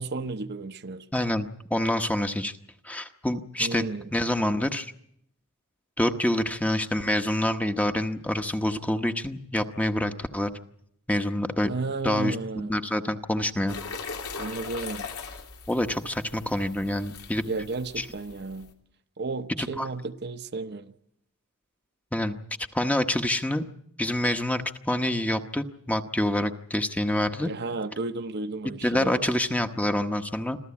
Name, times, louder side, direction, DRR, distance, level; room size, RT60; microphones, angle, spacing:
voice 1, 0.0-1.0 3.6-4.1 11.7-12.7 14.3-15.1 17.4-18.7 19.2-20.9 27.4-29.3, right 3 dB, 50° right, 0.9 m, -33 dB
voice 2, 1.1-2.6 2.8-4.9 6.0-10.5 11.1-11.7 12.0-12.4 12.7-13.8 15.7-17.4 18.0-18.1 19.6-19.9 22.1-22.4 22.7-23.6 24.0-27.5 28.8-30.6, left 1 dB, 5° left, 0.9 m, -27 dB
sound 1, 13.7-18.7, left 5 dB, 90° left, 2.8 m, -40 dB
26.5 x 14.0 x 8.6 m
head